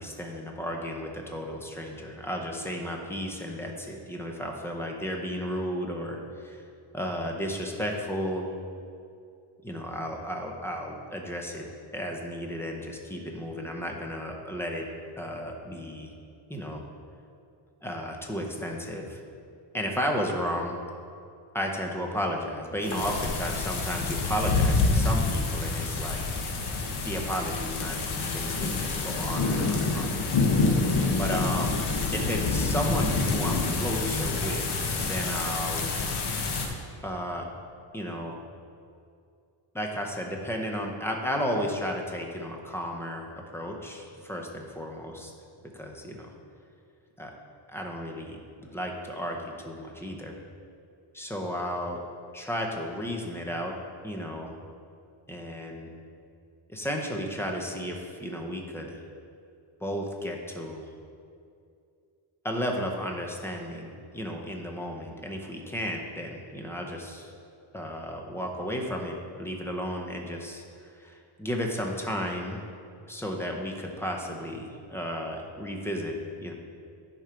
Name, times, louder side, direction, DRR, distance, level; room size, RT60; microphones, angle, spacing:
voice 1, 0.0-6.6 6.9-8.5 9.6-11.6 11.9-14.9 15.2-16.1 16.5-16.8 17.8-19.2 19.7-20.8 21.5-26.2 27.0-30.1 31.2-31.8 32.1-35.9 37.0-37.4 37.9-38.4 39.7-45.3 45.7-46.3 47.2-47.3 47.7-50.4 51.1-52.0 52.3-53.7 54.0-54.5 55.3-55.9 56.7-59.0 59.8-60.9 62.4-67.3 67.7-70.6 70.9-72.6 73.1-76.5, equal, 5° left, 1 dB, 0.7 m, -33 dB
sound 1, 22.8-36.7, left 3 dB, 60° left, 1.2 m, -27 dB
10.5 x 4.5 x 5.1 m, 2.4 s
cardioid pair, 165°, 45 cm